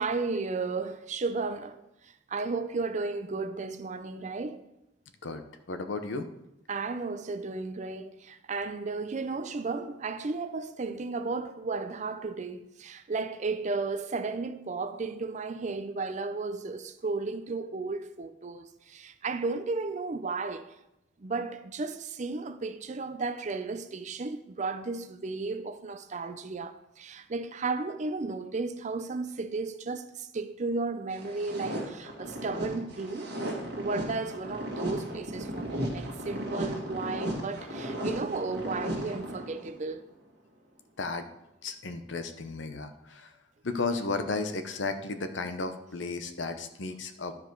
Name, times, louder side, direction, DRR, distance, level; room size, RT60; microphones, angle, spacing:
voice 1, 0.0-4.6 6.7-20.7 21.2-33.3 33.8-40.1, right 3 dB, 40° right, 0.5 m, -34 dB
voice 2, 5.2-6.3 41.0-41.3 41.6-43.3 43.6-47.3, left 3 dB, 75° left, 0.7 m, -34 dB
sound 1, 31.1-39.7, right 1 dB, 60° right, 1.8 m, -35 dB
11.5 x 5.0 x 4.5 m
head